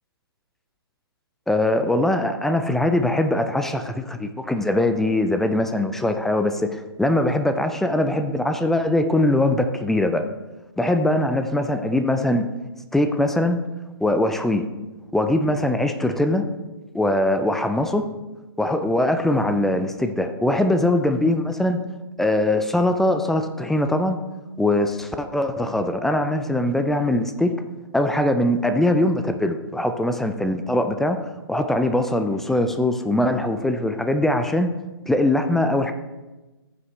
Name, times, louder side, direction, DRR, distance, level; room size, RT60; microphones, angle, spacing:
voice 1, 1.5-10.3 10.8-12.5 12.9-13.6 14.0-14.7 15.1-16.4 16.9-18.1 18.6-21.8 22.2-24.2 24.6-27.5 27.9-31.2 31.5-34.7 35.1-35.9, left 1 dB, ahead, 7 dB, 0.3 m, -21 dB
14.5 x 5.7 x 3.2 m, 1.1 s
figure-of-eight pair, 130°, 13 cm